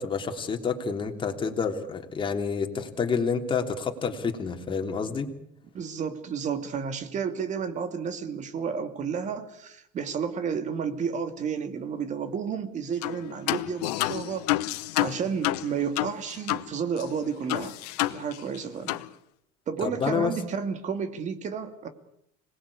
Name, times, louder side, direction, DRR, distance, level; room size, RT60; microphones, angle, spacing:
voice 1, 0.0-5.3 19.8-20.3, left 5 dB, 25° left, 4 dB, 3.1 m, -28 dB
voice 2, 5.7-14.5 15.0-17.7 18.1-19.0 19.7-21.9, right 6 dB, 35° right, 9 dB, 2.5 m, -31 dB
Manipulated Computer Tapping, 13.0-13.2 13.5-16.7 17.0-17.1 17.5-18.6 18.9-19.1, left 17 dB, 85° left, 1.0 m, -29 dB
26.0 x 20.0 x 8.5 m, 0.77 s
supercardioid pair, 125°, 20 cm